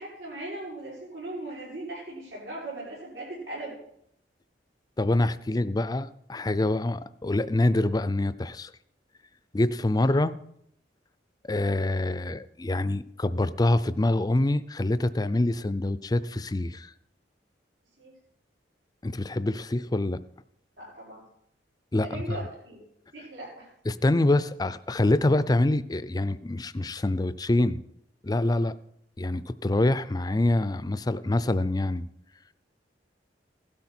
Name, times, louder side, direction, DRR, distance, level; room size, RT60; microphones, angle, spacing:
voice 1, 0.0-3.8 18.0-18.1 20.8-21.2 22.0-22.8 23.1-23.7, right 2 dB, 90° right, -9 dB, 6.2 m, -38 dB
voice 2, 5.0-8.7 9.5-10.3 11.4-16.9 19.0-20.2 21.9-22.4 23.9-27.8 28.2-28.7 29.2-32.1, left 2 dB, 20° left, 14 dB, 0.5 m, -25 dB
16.5 x 12.0 x 4.4 m, 0.73 s
head